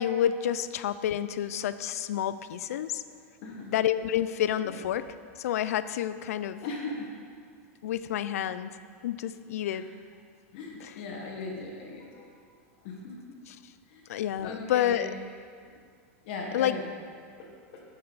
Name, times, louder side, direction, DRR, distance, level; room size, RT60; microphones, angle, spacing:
voice 1, 0.0-3.0 3.7-5.1 5.4-6.6 7.8-8.7 9.0-9.9 10.8-10.9 14.1-15.1 16.5-16.8, left 10 dB, 90° left, 13 dB, 0.3 m, -29 dB
voice 2, 6.6-7.1 9.7-9.8 10.5-12.3 12.8-13.4 13.9-14.0 14.4-15.1 15.7-15.8 16.2-16.9 17.4-17.8, left 3 dB, 40° left, -1 dB, 1.2 m, -39 dB
10.0 x 5.5 x 3.9 m, 2.2 s
supercardioid pair, 180°, 8 cm